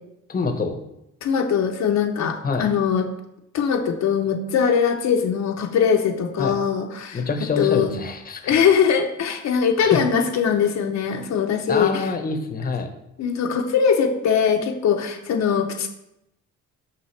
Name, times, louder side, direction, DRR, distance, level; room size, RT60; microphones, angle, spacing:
voice 1, 0.3-0.8 2.4-2.7 6.4-6.5 7.1-8.5 9.8-10.0 11.7-12.9, left 4 dB, 30° left, 6 dB, 0.8 m, -25 dB
voice 2, 1.2-3.1 3.5-7.3 7.6-7.9 8.5-12.1 13.2-15.9, left 7 dB, 60° left, 3 dB, 0.7 m, -21 dB
5.7 x 5.4 x 3.2 m, 0.83 s
cardioid pair, 90°, 30 cm